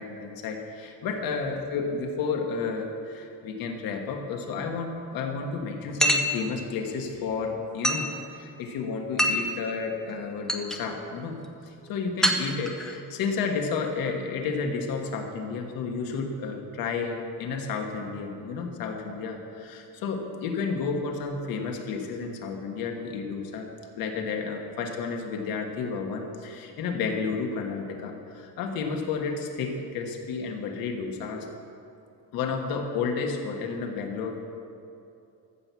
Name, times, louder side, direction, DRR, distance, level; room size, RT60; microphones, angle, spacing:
voice 1, 0.0-23.7 23.9-31.5 32.3-34.4, left 5 dB, 70° left, 3 dB, 1.5 m, -31 dB
sound 1, 6.0-6.4 7.8-8.1 9.2-9.5 10.1-10.2 10.5-10.8 12.2-13.0, equal, ahead, 0.5 m, -24 dB
14.0 x 6.1 x 7.0 m, 2.6 s
cardioid pair, 170°, 37 cm